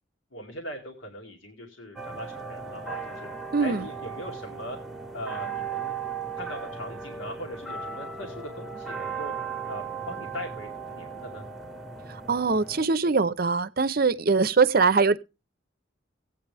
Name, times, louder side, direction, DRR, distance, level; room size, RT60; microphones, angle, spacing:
voice 1, 0.3-3.3 3.6-4.8 5.1-6.0 6.3-9.3 9.7-11.4, equal, 80° left, 2.2 m, -40 dB
sound 1, 2.0-12.9, right 5 dB, ahead, 1.0 m, -37 dB
voice 2, 3.5-3.9 12.1-15.2, right 4 dB, 50° right, 0.6 m, -22 dB
16.5 x 8.8 x 3.4 m
head